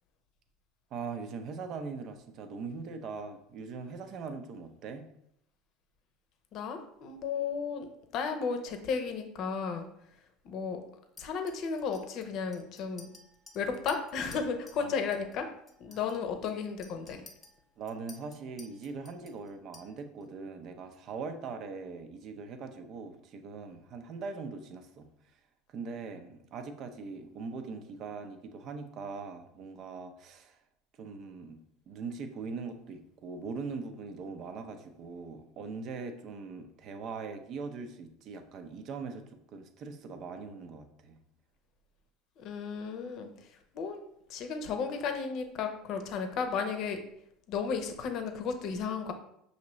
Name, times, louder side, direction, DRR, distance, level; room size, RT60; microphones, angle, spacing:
voice 1, 0.9-5.1 14.8-14.9 17.8-25.1 25.7-30.5 31.0-31.6 31.9-39.3 39.5-41.2, right 4 dB, 50° right, 7 dB, 0.6 m, -41 dB
voice 2, 6.5-9.9 10.4-10.8 11.2-13.1 13.5-15.5 15.8-17.2 42.4-44.0 44.3-47.0 47.5-49.1, left 5 dB, 55° left, 6 dB, 0.7 m, -34 dB
Chink clink, 11.2-14.9 15.1-15.4 15.7-20.2, left 2 dB, 20° left, 0.8 m, -55 dB
5.8 x 2.7 x 3.0 m, 0.75 s
hypercardioid pair, 85°, 0 cm